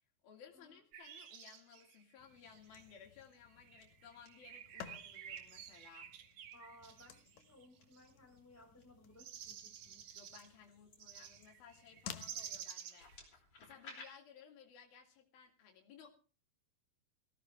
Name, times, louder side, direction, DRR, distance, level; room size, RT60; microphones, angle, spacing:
voice 1, 0.2-6.1 10.2-16.2, left 7 dB, 85° left, 2 dB, 4.2 m, -59 dB
sound 1, 0.9-3.0 3.5-8.1 9.2-10.5 11.0-13.2, right 9 dB, 70° right, 1.4 m, -52 dB
sound 2, 2.2-12.7, left 9 dB, 65° left, 1.9 m, -56 dB
sound 3, 3.2-3.4 3.8-4.3 5.1-5.4 6.3-6.5 7.4-7.8 8.4-8.8 9.4-12.1 12.8-14.1, left 3 dB, 45° left, 5.5 m, -58 dB
voice 2, 6.5-10.2, left 1 dB, 5° left, 1 dB, 4.8 m, -61 dB
18.0 x 16.5 x 3.4 m, 0.35 s
omnidirectional pair, 4.2 m